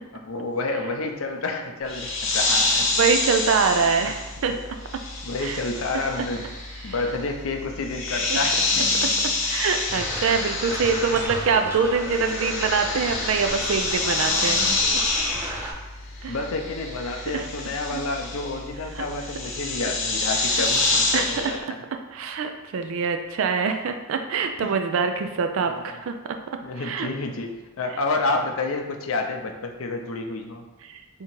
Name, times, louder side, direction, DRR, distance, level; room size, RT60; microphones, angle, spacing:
voice 1, 0.1-2.9 3.7-4.1 4.4-4.6 5.2-6.5 6.8-8.9 16.3-21.8 24.6-24.8 26.6-30.6, left 3 dB, 80° left, 4 dB, 0.6 m, -29 dB
sound 1, 1.9-11.6 11.8-21.6, left 3 dB, 65° left, 0.9 m, -27 dB
voice 2, 2.9-4.5 5.4-5.6 6.8-6.9 8.3-8.4 9.0-9.1 9.4-15.0 15.3-15.7 16.2-16.3 17.3-17.5 17.9-18.0 18.9-19.0 21.1-21.3 22.1-26.1 26.8-27.1 30.9-31.0, right 5 dB, 75° right, 6 dB, 0.4 m, -24 dB
sound 2, 9.9-15.7, right 1 dB, 10° right, 0.6 m, -34 dB
3.6 x 2.9 x 4.4 m, 1.1 s
head